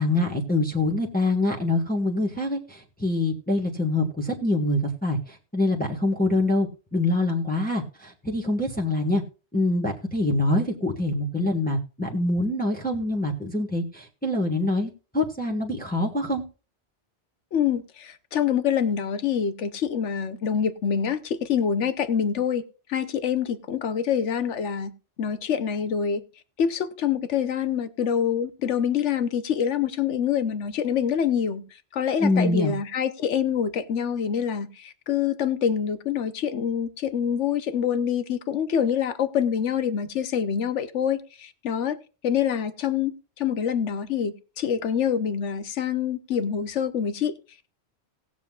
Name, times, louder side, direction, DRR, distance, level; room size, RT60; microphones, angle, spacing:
voice 1, 0.0-9.2 9.5-16.4 32.2-32.7, left 2 dB, 10° left, 1.4 m, -25 dB
voice 2, 17.5-22.6 22.9-24.9 25.2-26.2 26.6-31.6 31.9-42.0 42.2-47.3, left 8 dB, 90° left, 1.2 m, -26 dB
19.0 x 7.4 x 2.4 m
omnidirectional pair, 1.2 m